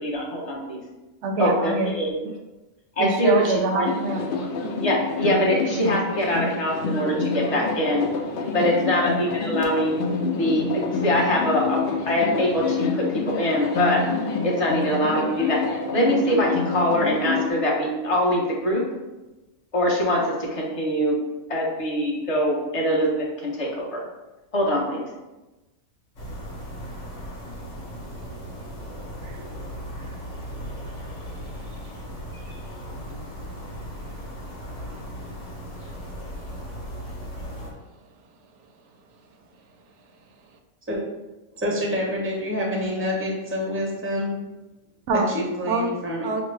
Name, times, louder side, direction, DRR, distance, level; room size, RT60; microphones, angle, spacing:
voice 1, 0.0-0.8 1.4-2.1 3.0-3.3 3.7-3.9 4.8-8.1 8.5-10.0 10.4-11.8 12.0-14.0 14.4-15.6 15.9-18.9 19.7-21.2 21.5-24.0 24.5-25.0, equal, 30° left, -3 dB, 0.8 m, -23 dB
voice 2, 1.2-1.9 3.0-4.5 8.6-8.9 29.2-29.5 31.7-31.8 45.1-45.3 45.7-45.9 46.2-46.4, right 3 dB, 65° right, 4 dB, 0.8 m, -25 dB
sound 1, 3.8-17.5, left 4 dB, 80° left, 0.4 m, -28 dB
sound 2, 26.2-37.7, equal, 60° left, 1.4 m, -37 dB
voice 3, 41.5-44.3 45.1-46.3, left 1 dB, 15° right, -2 dB, 0.5 m, -27 dB
6.1 x 2.1 x 3.2 m, 1.1 s
omnidirectional pair, 1.4 m